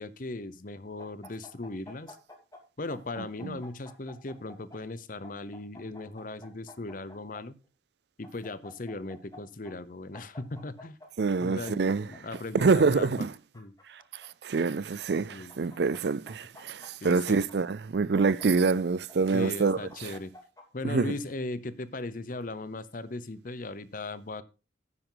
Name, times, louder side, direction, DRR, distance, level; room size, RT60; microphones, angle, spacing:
voice 1, 0.0-2.2 2.8-7.5 8.2-11.0 11.4-13.1 13.5-13.7 15.3-15.5 17.0-17.4 19.3-20.3 20.7-24.4, left 2 dB, 45° left, 0.8 m, -38 dB
sound 1, 1.0-2.6 2.9-4.8 5.2-7.4 8.2-9.4 9.6-9.7 10.1-11.1 11.6-12.7 13.3-14.3 15.1-16.0 16.3-17.5 18.2-19.1 19.7-20.6, left 2 dB, 20° left, 2.5 m, -50 dB
voice 2, 11.2-12.1 12.5-13.3 13.9-20.1 20.8-21.1, right 4 dB, 60° right, 0.4 m, -26 dB
10.0 x 9.2 x 3.9 m
head